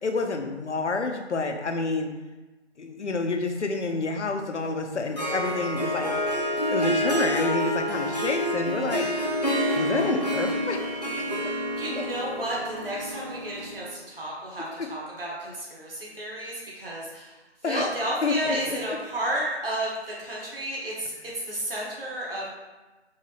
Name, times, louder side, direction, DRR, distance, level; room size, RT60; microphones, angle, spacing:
voice 1, 0.0-2.1 2.8-6.2 6.7-9.2 9.8-11.3 11.9-12.0 14.8-14.9 17.6-17.8 18.2-19.0, left 3 dB, 85° left, 5 dB, 0.7 m, -29 dB
Harp, 4.9-13.9, equal, 40° left, 0.4 m, -28 dB
voice 2, 11.5-17.4 17.6-19.9 20.2-22.5, right 1 dB, 55° right, -5 dB, 1.5 m, -32 dB
4.6 x 2.7 x 3.0 m, 1.2 s
figure-of-eight pair, 165°, 34 cm